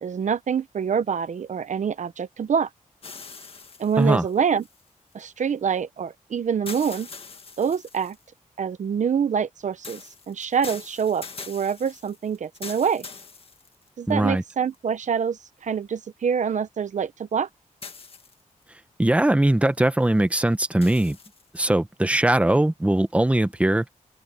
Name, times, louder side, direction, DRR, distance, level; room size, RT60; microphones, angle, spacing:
voice 1, 0.0-2.7 3.8-4.6 5.1-7.1 7.6-8.2 8.6-10.0 10.3-13.0 14.0-17.5, right 7 dB, 65° right, 0.8 m, -26 dB
Water drops on a hot surface, 3.0-5.2 6.7-8.3 9.8-14.1 14.7-14.8 17.8-18.6 20.8-21.6, left 4 dB, 45° left, 1.8 m, -42 dB
voice 2, 14.1-14.4 19.0-21.2 21.5-23.8, right 1 dB, 10° right, 1.1 m, -20 dB
wide cardioid pair, 115°, 14 cm